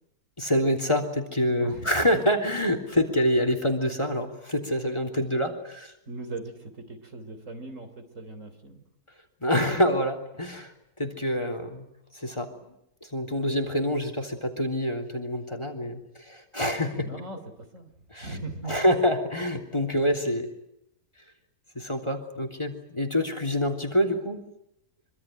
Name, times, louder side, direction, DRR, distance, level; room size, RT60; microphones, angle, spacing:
voice 1, 0.4-5.9 9.4-10.7 11.0-11.9 12.1-12.5 13.0-17.1 18.1-18.4 18.6-20.5 21.7-24.4, equal, 20° left, 6 dB, 3.4 m, -26 dB
voice 2, 1.6-1.9 6.1-8.9 16.9-17.9 18.2-18.8, right 2 dB, 55° right, 7 dB, 3.7 m, -39 dB
25.5 x 25.0 x 9.2 m, 0.80 s
omnidirectional pair, 1.6 m